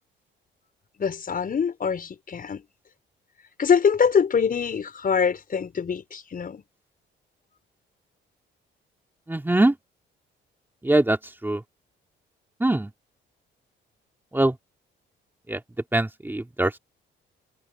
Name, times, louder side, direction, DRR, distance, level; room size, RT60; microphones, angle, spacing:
voice 1, 1.0-2.6 3.6-6.6, left 6 dB, 45° left, 6.3 m, -24 dB
voice 2, 9.3-9.7 10.8-11.2 11.4-11.6 12.6-12.9 14.3-14.5 15.5-15.6 15.9-16.8, right 1 dB, 10° right, 2.9 m, -22 dB
cardioid pair, 90°, 20 cm